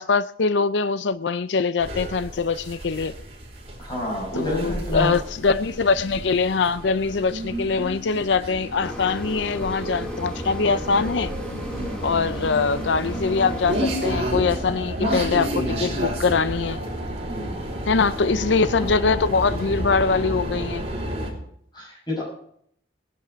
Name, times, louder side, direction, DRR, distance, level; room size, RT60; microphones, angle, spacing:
voice 1, 0.0-3.1 4.4-11.3 12.0-16.8 17.9-20.9, left 4 dB, 75° left, 0.5 m, -23 dB
sound 1, 1.8-21.3, equal, 35° right, 4.8 m, -31 dB
voice 2, 3.8-5.2 11.8-12.1 17.3-17.6 18.8-18.9 21.7-22.2, equal, 25° left, 6.0 m, -29 dB
sound 2, 8.8-14.0, equal, 5° left, 1.4 m, -36 dB
18.0 x 11.0 x 5.1 m
head